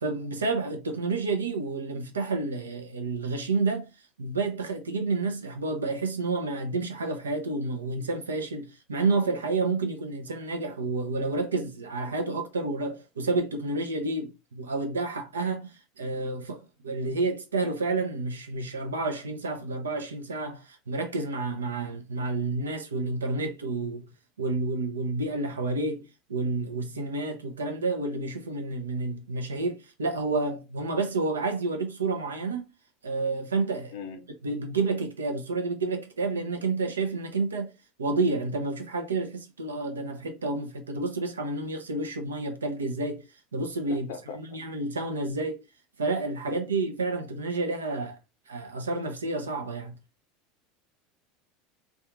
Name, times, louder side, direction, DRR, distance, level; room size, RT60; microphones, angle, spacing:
voice 1, 0.0-3.9 4.2-16.6 16.8-24.1 24.4-26.0 26.3-32.7 33.0-33.9 34.4-37.7 38.0-43.2 43.5-44.1 44.3-45.6 46.0-48.2 48.5-49.9, right 3 dB, 80° right, 0.6 m, -30 dB
voice 2, 33.9-34.3 43.9-44.6 46.5-46.6, left 6 dB, 60° left, 0.5 m, -40 dB
2.7 x 2.4 x 3.7 m
figure-of-eight pair, 75°, 0 cm